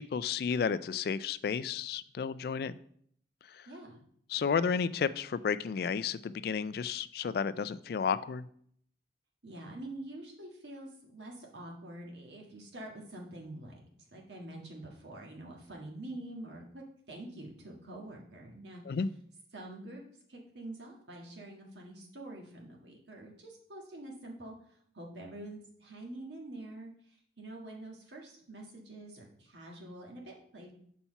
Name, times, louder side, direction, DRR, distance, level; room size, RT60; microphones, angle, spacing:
voice 1, 0.0-2.7 4.3-8.4 18.9-19.1, left 6 dB, 60° left, 15 dB, 0.3 m, -32 dB
voice 2, 3.6-4.0 9.4-13.8 14.1-19.0 19.5-20.0 20.3-24.5 24.9-30.7, right 1 dB, 80° right, -1 dB, 1.6 m, -46 dB
5.8 x 4.2 x 5.5 m, 0.63 s
head